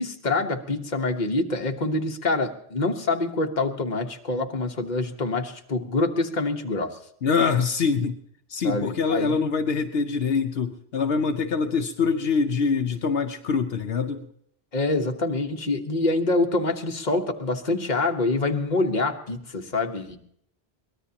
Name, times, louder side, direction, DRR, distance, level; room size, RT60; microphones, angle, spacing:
voice 1, 0.0-7.0 8.6-9.5 14.7-20.2, left 2 dB, 45° left, 4 dB, 1.3 m, -26 dB
voice 2, 7.2-8.2 8.5-14.3, left 5 dB, 75° left, 6 dB, 1.0 m, -24 dB
23.5 x 19.0 x 2.9 m, 0.68 s
omnidirectional pair, 1.0 m